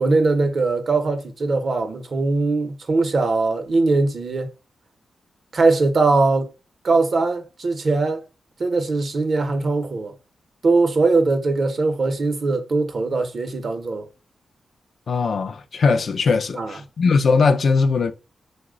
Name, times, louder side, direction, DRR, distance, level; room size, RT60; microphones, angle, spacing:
voice 1, 0.0-4.5 5.5-6.5 6.8-8.2 8.6-10.1 10.6-14.1 16.5-16.8, right 3 dB, 55° right, 0.6 m, -21 dB
voice 2, 15.1-18.1, left 4 dB, 65° left, 0.4 m, -19 dB
3.0 x 2.1 x 3.6 m
cardioid pair, 70°, 0 cm